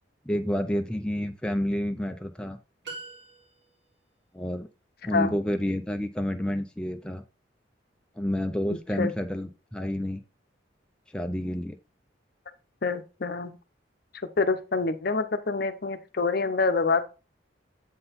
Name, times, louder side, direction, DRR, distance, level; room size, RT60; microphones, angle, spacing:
voice 1, 0.3-2.6 4.3-4.7 5.0-7.2 8.2-10.2 11.1-11.8, equal, 5° left, 5 dB, 0.4 m, -29 dB
sound 1, 2.8-4.0, right 3 dB, 65° right, 2.2 m, -43 dB
voice 2, 12.8-13.6 14.4-17.0, left 4 dB, 55° left, 10 dB, 0.7 m, -26 dB
7.8 x 3.8 x 4.1 m, 0.31 s
head